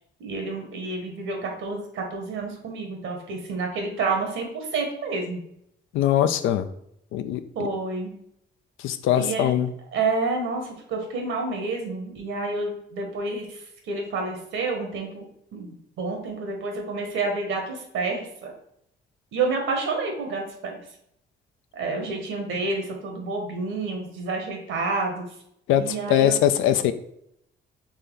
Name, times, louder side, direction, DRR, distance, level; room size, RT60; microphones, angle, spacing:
voice 1, 0.2-5.4 7.5-8.1 9.1-9.6 9.9-15.3 15.5-18.5 19.3-20.8 21.7-25.3 25.7-26.4, right 3 dB, 80° right, 2 dB, 1.3 m, -29 dB
voice 2, 5.9-6.7 7.1-7.4 8.8-9.7 25.7-25.8 26.1-26.9, left 11 dB, 85° left, 11 dB, 0.4 m, -21 dB
4.1 x 3.3 x 3.8 m, 0.74 s
cardioid pair, 90°, 20 cm